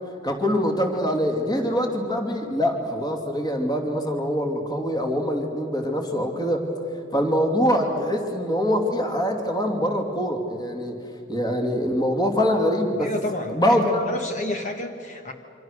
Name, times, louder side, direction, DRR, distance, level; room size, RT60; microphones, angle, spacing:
voice 1, 0.2-6.6 7.1-11.0 11.3-13.1 13.5-14.0, equal, 20° left, 3 dB, 2.8 m, -24 dB
voice 2, 13.0-15.3, left 1 dB, 40° left, 5 dB, 1.5 m, -30 dB
27.5 x 25.5 x 6.7 m, 2.6 s
head